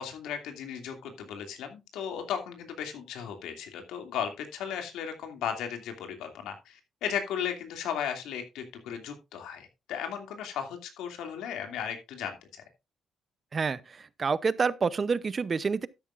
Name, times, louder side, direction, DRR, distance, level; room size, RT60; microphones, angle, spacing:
voice 1, 0.0-12.6, left 8 dB, 90° left, 2.5 m, -36 dB
voice 2, 13.5-15.9, right 5 dB, 40° right, 0.7 m, -28 dB
12.5 x 9.9 x 2.5 m
cardioid pair, 90°, 0 cm